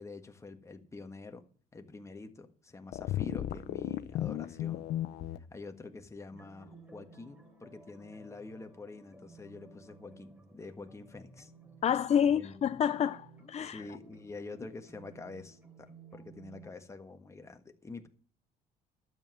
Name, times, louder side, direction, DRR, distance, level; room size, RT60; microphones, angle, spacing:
voice 1, 0.0-1.4 1.7-4.9 5.5-11.5 12.2-12.6 13.6-18.1, left 3 dB, 15° left, 1.6 m, -47 dB
sound 1, 2.9-5.4, left 12 dB, 75° left, 0.9 m, -34 dB
sound 2, 6.3-16.7, right 3 dB, 10° right, 3.4 m, -56 dB
voice 2, 11.8-13.8, left 8 dB, 40° left, 0.6 m, -28 dB
12.5 x 7.4 x 7.7 m
cardioid pair, 110°, 17 cm